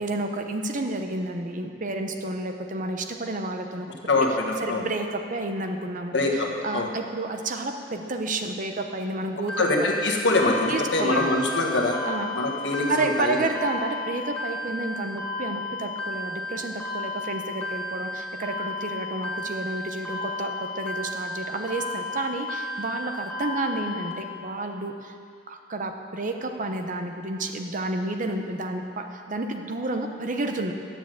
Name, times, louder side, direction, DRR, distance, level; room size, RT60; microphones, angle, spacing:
voice 1, 0.0-4.2 4.6-6.1 6.6-9.9 10.7-11.3 12.1-12.3 12.9-25.1 25.5-30.7, right 2 dB, 45° right, 5 dB, 0.8 m, -30 dB
voice 2, 4.1-4.9 6.1-6.9 9.6-12.0 12.3-13.4, left 2 dB, 70° left, 1 dB, 1.4 m, -24 dB
sound 1, 9.5-24.1, left 2 dB, 5° left, 1.4 m, -33 dB
9.5 x 6.9 x 7.6 m, 2.2 s
head